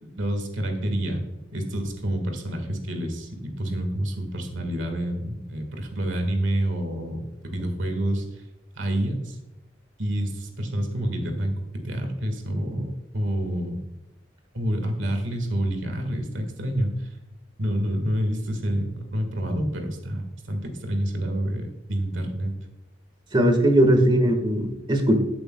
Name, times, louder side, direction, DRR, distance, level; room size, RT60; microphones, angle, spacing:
voice 1, 0.0-1.2 1.5-8.4 8.7-9.4 10.0-11.6 11.8-13.8 14.5-17.1 17.6-22.5 24.0-24.1, right 1 dB, 75° right, 5 dB, 1.6 m, -28 dB
voice 2, 23.3-25.2, right 1 dB, 25° right, 5 dB, 1.4 m, -19 dB
14.5 x 7.9 x 2.2 m, 0.98 s
head